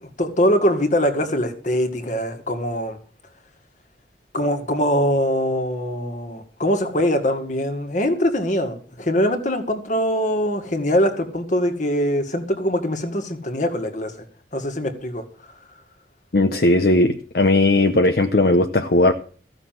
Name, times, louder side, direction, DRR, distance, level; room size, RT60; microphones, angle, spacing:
voice 1, 0.0-3.0 4.3-14.1 14.5-15.2, equal, 45° left, 6 dB, 1.9 m, -22 dB
voice 2, 16.3-19.1, left 2 dB, 60° left, 7 dB, 0.8 m, -17 dB
15.0 x 6.5 x 7.6 m, 0.43 s
head